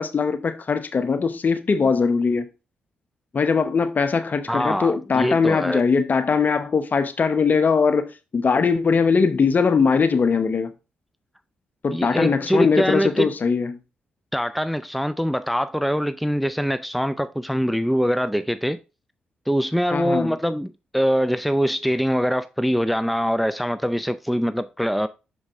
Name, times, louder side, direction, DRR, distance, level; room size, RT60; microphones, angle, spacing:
voice 1, 0.0-2.5 3.3-10.7 11.8-13.8 19.9-20.3, left 5 dB, 45° left, 1.0 m, -21 dB
voice 2, 4.5-5.8 11.9-13.3 14.3-18.8 19.5-25.1, equal, ahead, 0.4 m, -23 dB
6.3 x 5.2 x 3.6 m
hypercardioid pair, 40°, 4 cm